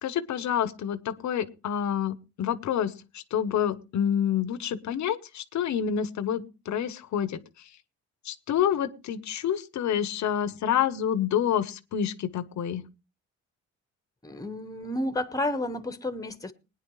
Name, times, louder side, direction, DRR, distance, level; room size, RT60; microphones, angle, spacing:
voice 1, 0.0-7.4 8.2-12.8, left 9 dB, 70° left, 15 dB, 1.1 m, -28 dB
voice 2, 14.2-16.5, left 1 dB, 10° left, 12 dB, 1.3 m, -31 dB
20.5 x 9.8 x 3.2 m, 0.30 s
cardioid pair, 90°, 30 cm